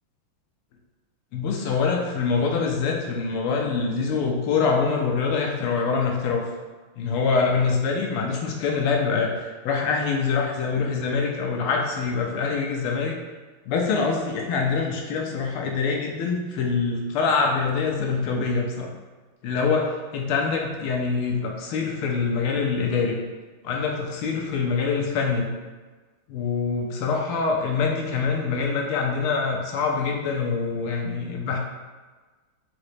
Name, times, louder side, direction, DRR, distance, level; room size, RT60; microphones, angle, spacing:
voice 1, 1.3-6.5 7.0-13.1 13.6-18.9 19.4-23.2 23.6-25.5 26.3-31.6, left 5 dB, 85° left, 0 dB, 1.6 m, -25 dB
5.2 x 2.9 x 3.2 m, 1.3 s
omnidirectional pair, 2.4 m